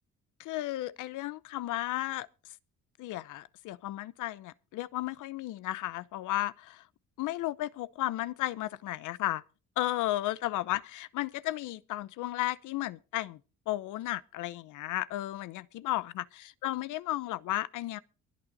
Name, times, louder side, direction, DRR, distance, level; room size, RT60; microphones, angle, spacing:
voice 1, 0.4-2.3 3.0-6.8 7.2-9.4 9.8-13.4 13.7-18.0, left 16 dB, 90° left, 0.8 m, -34 dB
23.0 x 9.0 x 4.1 m
cardioid pair, 90°, 30 cm